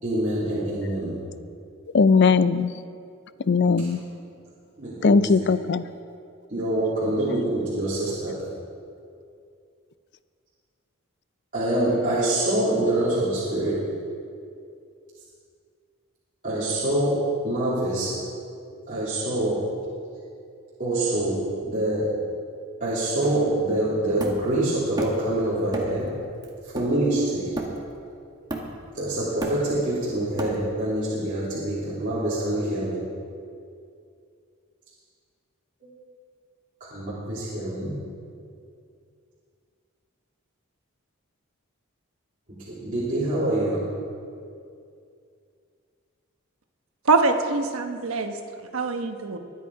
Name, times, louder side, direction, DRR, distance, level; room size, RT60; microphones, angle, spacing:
voice 1, 0.0-1.2 3.6-3.7 4.8-5.5 6.5-8.4 11.5-13.8 16.4-18.1 18.9-19.6 20.8-22.1 22.8-26.1 26.6-27.5 28.9-33.0 35.8-35.9 36.9-38.0 42.5-43.8, right 1 dB, 40° right, -11 dB, 3.1 m, -25 dB
voice 2, 1.9-2.7 3.5-4.0 5.0-5.8, left 4 dB, 55° left, 15 dB, 0.4 m, -19 dB
Hammer, 24.2-25.3 25.7-26.1 26.4-28.0 28.5-28.9 29.2-30.9, right 1 dB, 20° right, 1.6 m, -33 dB
voice 3, 47.0-48.3 48.7-49.4, right 4 dB, 75° right, 5 dB, 1.1 m, -23 dB
23.0 x 8.5 x 4.8 m, 2.4 s
head